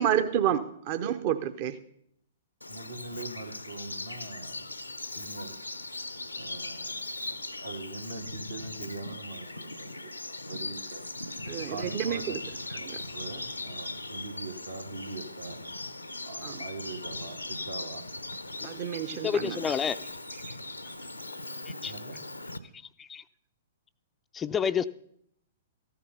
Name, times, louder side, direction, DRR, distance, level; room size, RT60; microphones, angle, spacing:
voice 1, 0.0-1.8 11.5-12.4 12.8-13.0 16.4-16.6 18.6-19.6 20.4-20.5, right 9 dB, 40° right, 9 dB, 0.7 m, -29 dB
Bird vocalization bird call bird song, 2.6-22.6, left 2 dB, 85° left, 0.7 m, -39 dB
voice 2, 2.7-4.6 5.0-5.5 6.3-11.0 11.7-15.6 16.2-18.1 21.8-22.2, right 3 dB, 75° right, 5 dB, 1.5 m, -42 dB
voice 3, 19.2-20.0 21.8-21.9 23.0-23.2 24.3-24.9, left 7 dB, 15° left, 12 dB, 0.4 m, -28 dB
14.0 x 9.5 x 5.5 m, 0.71 s
figure-of-eight pair, 110°, 0 cm